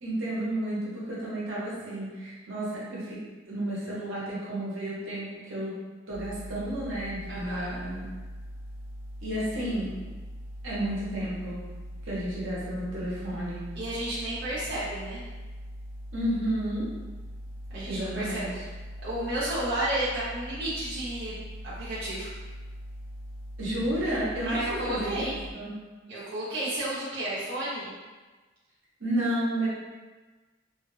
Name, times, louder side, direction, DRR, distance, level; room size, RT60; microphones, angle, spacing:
voice 1, 0.0-5.8 6.1-8.1 9.2-10.0 10.6-11.6 12.0-13.6 16.1-16.9 17.8-18.6 23.6-25.7 29.0-29.7, right 1 dB, 85° right, -7 dB, 1.0 m, -31 dB
sound 1, 6.1-25.5, equal, 75° left, 0.4 m, -41 dB
voice 2, 7.3-7.8 13.8-15.2 17.7-18.5 19.0-21.4 21.6-22.3 24.4-25.4 26.1-27.9, right 1 dB, 55° right, -10 dB, 0.7 m, -32 dB
2.7 x 2.4 x 3.1 m, 1.3 s
head